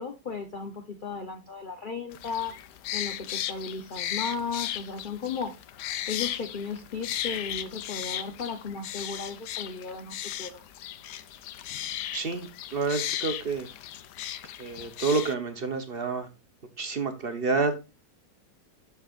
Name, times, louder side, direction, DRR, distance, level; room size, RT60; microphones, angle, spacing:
voice 1, 0.0-2.5 2.9-5.5 6.1-10.6, left 5 dB, 45° left, 5 dB, 0.7 m, -35 dB
sound 1, 2.1-15.3, left 12 dB, 75° left, 1.2 m, -36 dB
voice 2, 12.1-13.7 14.6-16.3 16.8-17.7, right 4 dB, 45° right, 8 dB, 0.9 m, -29 dB
12.5 x 4.8 x 2.5 m, 0.27 s
omnidirectional pair, 1.9 m